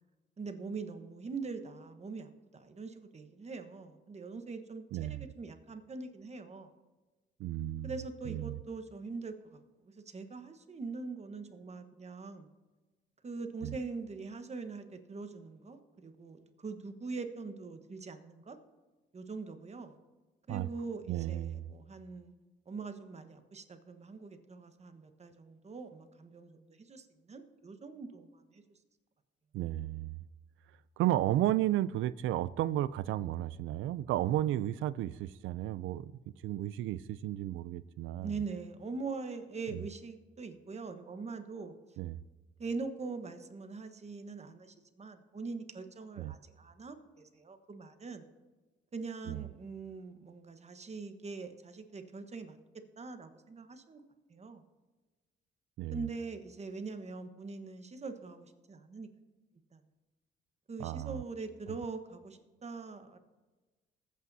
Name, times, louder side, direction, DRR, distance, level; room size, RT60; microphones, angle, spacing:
voice 1, 0.4-6.7 7.8-12.5 13.2-18.6 19.1-20.0 20.5-22.3 22.7-28.6 38.2-41.7 42.6-48.2 48.9-52.6 53.0-54.0 54.3-54.6 55.9-59.1 59.7-59.8 60.7-63.2, right 4 dB, 35° right, 1.2 m, -43 dB
voice 2, 4.9-5.2 7.4-7.9 8.3-8.6 13.6-13.7 20.5-20.7 21.1-21.6 29.5-30.2 31.0-36.1 36.4-38.4 39.7-39.8 42.0-42.2 46.2-46.3 49.3-49.4 55.8-56.1 60.8-61.2, right 13 dB, 80° right, 0.4 m, -33 dB
21.0 x 8.6 x 2.7 m
cardioid pair, 90°, 20 cm